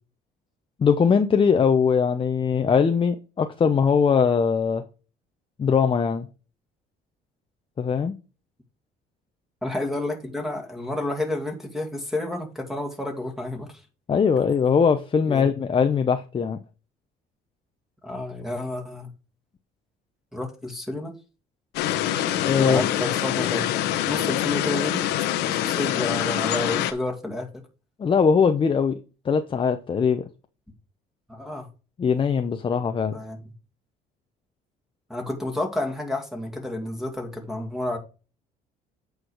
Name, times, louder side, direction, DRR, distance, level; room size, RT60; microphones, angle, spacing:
voice 1, 0.8-4.8 5.6-6.3 7.8-8.1 14.1-16.6 22.4-22.8 28.0-29.0 29.2-30.3 32.0-33.2, left 6 dB, 30° left, 0.8 m, -21 dB
voice 2, 9.6-13.7 15.2-15.5 18.0-19.1 20.3-21.1 22.6-23.7 24.1-25.0 25.5-27.6 31.3-31.7 33.1-33.4 35.1-38.0, left 1 dB, ahead, 2.3 m, -30 dB
sound 1, 21.7-26.9, left 12 dB, 90° left, 1.0 m, -25 dB
8.5 x 4.8 x 4.8 m
cardioid pair, 110°, 17 cm